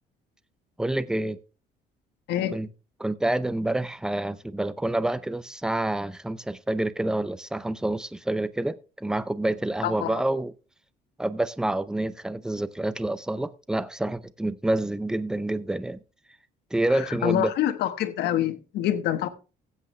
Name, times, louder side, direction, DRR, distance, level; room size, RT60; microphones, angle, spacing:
voice 1, 0.8-1.4 2.5-2.7 3.0-10.5 11.2-16.0 16.7-17.5, right 1 dB, 5° right, 0.6 m, -28 dB
voice 2, 9.8-10.2 16.9-19.3, left 11 dB, 75° left, 1.3 m, -26 dB
15.5 x 8.2 x 3.3 m
cardioid pair, 110°, 17 cm